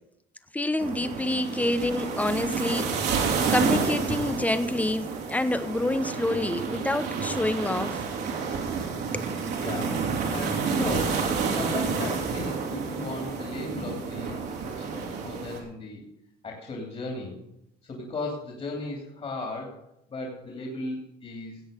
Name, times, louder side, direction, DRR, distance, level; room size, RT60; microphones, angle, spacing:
voice 1, 0.5-2.9 3.2-8.0 9.1-9.3, left 1 dB, 10° left, 11 dB, 0.9 m, -27 dB
sound 1, 0.8-15.6, right 5 dB, 75° right, 3.3 m, -29 dB
voice 2, 1.3-1.6 9.6-16.0 16.4-17.4 17.9-19.8 20.1-21.6, left 2 dB, 35° left, -1 dB, 3.0 m, -36 dB
17.0 x 8.0 x 5.2 m, 0.80 s
cardioid pair, 110°, 17 cm